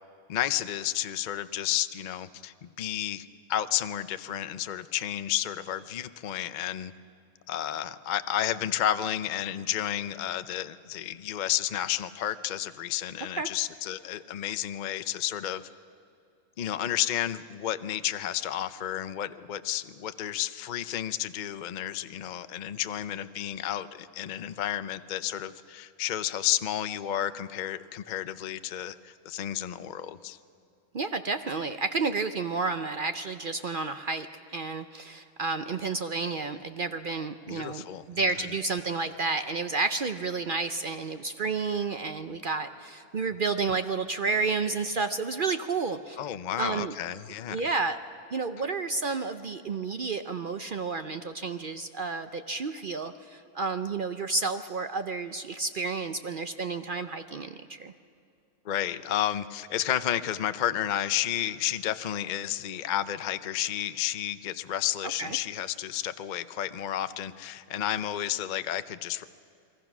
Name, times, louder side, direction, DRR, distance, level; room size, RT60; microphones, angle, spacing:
voice 1, 0.3-6.9 7.5-15.7 16.6-30.4 37.5-38.0 46.2-47.6 58.6-69.3, left 12 dB, 55° left, 12 dB, 0.5 m, -31 dB
voice 2, 30.9-46.2 46.6-46.9 47.5-48.0 48.3-57.9 65.2-65.4, right 4 dB, 55° right, 9 dB, 0.6 m, -31 dB
29.0 x 21.0 x 6.1 m, 2.4 s
omnidirectional pair, 1.5 m